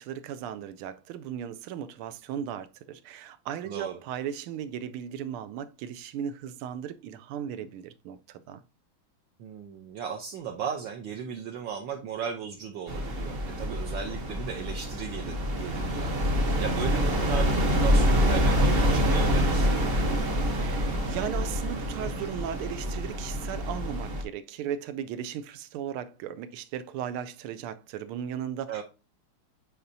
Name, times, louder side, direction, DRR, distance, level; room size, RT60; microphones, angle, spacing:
voice 1, 0.0-8.6 20.5-28.8, right 9 dB, 90° right, 1.5 m, -36 dB
voice 2, 3.7-4.0 9.4-19.8 28.7-28.8, right 7 dB, 70° right, 1.4 m, -36 dB
sound 1, 12.9-24.2, equal, 45° right, 0.7 m, -26 dB
8.4 x 4.2 x 2.6 m
omnidirectional pair, 2.3 m